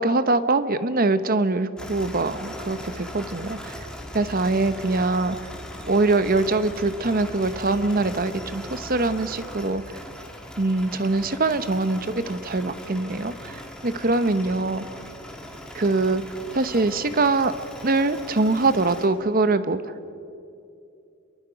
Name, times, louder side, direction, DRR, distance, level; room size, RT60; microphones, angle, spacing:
voice 1, 0.0-3.7 4.1-5.4 5.9-9.8 10.6-14.8 15.7-16.2 16.5-17.5 17.8-19.9, right 3 dB, 40° right, 12 dB, 0.9 m, -23 dB
sound 1, 1.8-19.1, left 1 dB, 5° left, 2.1 m, -39 dB
29.5 x 22.5 x 5.2 m, 2.7 s
head